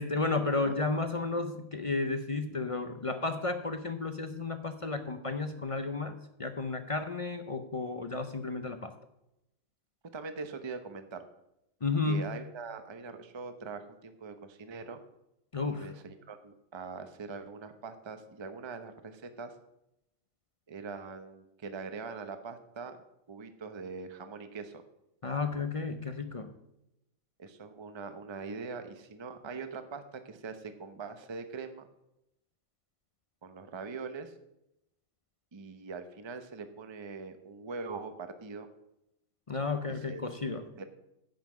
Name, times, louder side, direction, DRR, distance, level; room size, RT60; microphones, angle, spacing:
voice 1, 0.0-8.9 11.8-12.3 15.5-15.9 25.2-26.5 39.5-40.7, left 3 dB, 35° left, 8 dB, 0.5 m, -33 dB
voice 2, 10.1-11.2 12.0-15.0 15.7-19.5 20.7-23.0 23.3-24.8 27.4-31.9 33.4-34.3 35.5-38.7 40.0-40.2 40.8-40.9, right 4 dB, 25° right, 8 dB, 0.7 m, -42 dB
10.5 x 5.8 x 7.4 m, 0.84 s
omnidirectional pair, 1.4 m